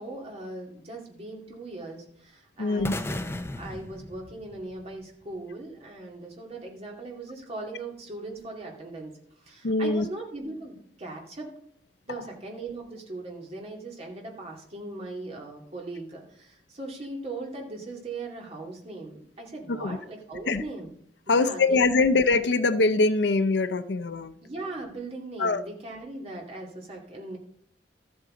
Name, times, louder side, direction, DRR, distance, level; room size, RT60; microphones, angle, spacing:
voice 1, 0.0-3.2 3.5-9.1 9.4-11.5 12.0-20.9 21.3-22.1 24.4-27.4, right 2 dB, 35° right, 0 dB, 2.4 m, -39 dB
voice 2, 2.6-3.0 9.6-10.1 19.7-20.0 20.5-20.6 21.3-24.4 25.4-25.6, left 3 dB, 75° left, 12 dB, 0.6 m, -23 dB
sound 1, 2.8-4.9, left 1 dB, 15° left, 0.6 m, -35 dB
13.5 x 8.0 x 3.8 m, 0.66 s
head